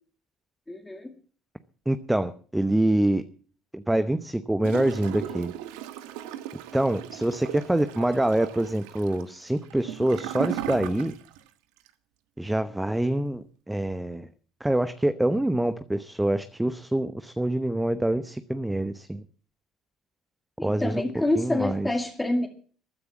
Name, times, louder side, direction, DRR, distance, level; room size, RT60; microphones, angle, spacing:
voice 1, 0.7-1.1 20.6-22.5, left 2 dB, 10° left, 2 dB, 2.2 m, -27 dB
voice 2, 1.9-3.2 3.7-5.5 6.7-11.1 12.4-14.3 14.6-19.2 20.6-21.0 21.4-21.9, right 1 dB, 5° right, 12 dB, 0.9 m, -25 dB
Gurgling / Toilet flush, 4.6-11.5 11.8-11.9, right 12 dB, 80° right, 1.3 m, -36 dB
15.0 x 9.6 x 7.2 m, 0.43 s
supercardioid pair, 80°, 0 cm